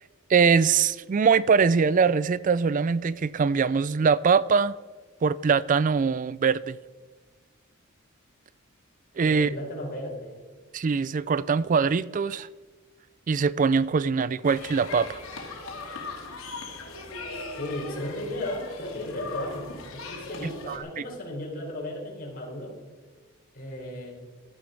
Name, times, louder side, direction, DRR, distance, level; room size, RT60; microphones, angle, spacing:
voice 1, 0.3-4.7 5.2-6.8 9.2-9.5 10.7-12.5 13.3-15.2 20.7-21.0, right 5 dB, 40° right, 0.4 m, -22 dB
voice 2, 9.3-10.4 17.6-22.8 23.5-24.1, left 1 dB, 45° left, 4.7 m, -35 dB
sound 1, 14.4-20.8, left 3 dB, 75° left, 3.1 m, -39 dB
16.5 x 12.5 x 5.3 m
head